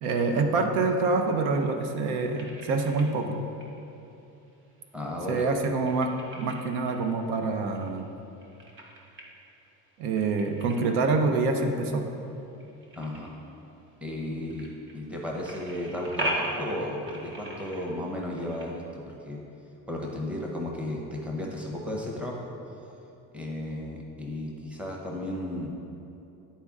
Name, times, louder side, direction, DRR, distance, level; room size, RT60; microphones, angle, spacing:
voice 1, 0.0-3.4 5.3-6.1 6.4-8.1 10.0-12.0, right 3 dB, 85° right, 5 dB, 0.8 m, -26 dB
sound 1, 1.2-18.7, right 1 dB, 35° right, 1.0 m, -41 dB
voice 2, 4.9-5.5 13.0-13.3 14.0-14.7 14.9-19.4 19.9-22.5 23.3-25.7, left 1 dB, 5° right, -2 dB, 0.7 m, -34 dB
10.5 x 4.3 x 3.6 m, 2.9 s
cardioid pair, 155°, 36 cm